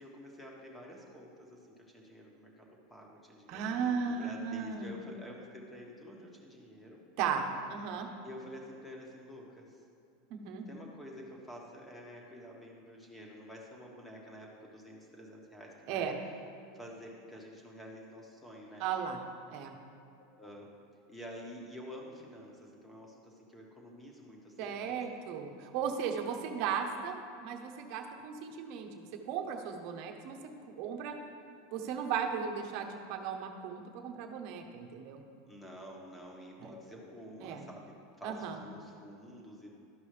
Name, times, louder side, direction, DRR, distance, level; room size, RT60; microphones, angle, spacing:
voice 1, 0.0-1.6 1.9-7.0 8.2-9.8 10.7-16.1 16.7-18.8 20.2-20.7 21.1-25.1 35.5-39.7, equal, 5° left, -2 dB, 1.5 m, -49 dB
voice 2, 3.5-5.0 7.2-8.1 10.3-10.6 15.9-16.1 18.8-19.2 19.5-19.7 24.6-27.1 27.4-30.4 30.8-31.2 31.7-35.2 36.6-36.7 37.4-37.6 38.2-38.6, right 7 dB, 55° right, 4 dB, 0.9 m, -36 dB
12.5 x 5.4 x 3.3 m, 2.5 s
supercardioid pair, 120°, 0 cm